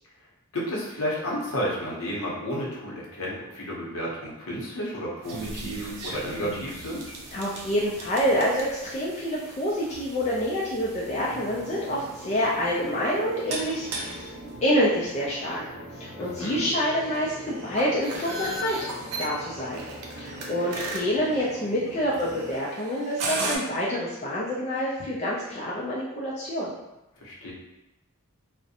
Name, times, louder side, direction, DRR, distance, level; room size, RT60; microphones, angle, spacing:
voice 1, 0.5-7.2 16.2-16.6 27.2-27.5, equal, 65° left, -4 dB, 0.7 m, -32 dB
sound 1, 5.2-23.6, right 2 dB, 80° right, 0.5 m, -38 dB
voice 2, 7.3-14.3 14.6-15.6 16.0-18.9 19.2-19.8 20.2-26.7, equal, 30° left, -6 dB, 0.3 m, -27 dB
sound 2, 11.0-22.5, equal, 5° right, 0.9 m, -42 dB
2.5 x 2.0 x 2.7 m, 0.94 s
head